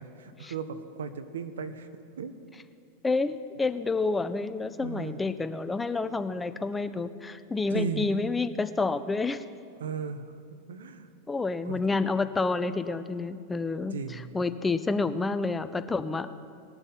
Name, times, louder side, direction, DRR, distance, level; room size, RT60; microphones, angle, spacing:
voice 1, 0.0-1.9 2.2-2.4 4.8-5.2 7.7-8.1 9.8-10.2 10.7-11.1 11.6-11.8 13.9-14.3, right 6 dB, 90° right, 10 dB, 0.9 m, -36 dB
voice 2, 3.0-9.4 11.3-16.3, left 3 dB, 10° left, 12 dB, 0.5 m, -29 dB
20.0 x 7.1 x 5.4 m, 2.5 s
hypercardioid pair, 115°, 0 cm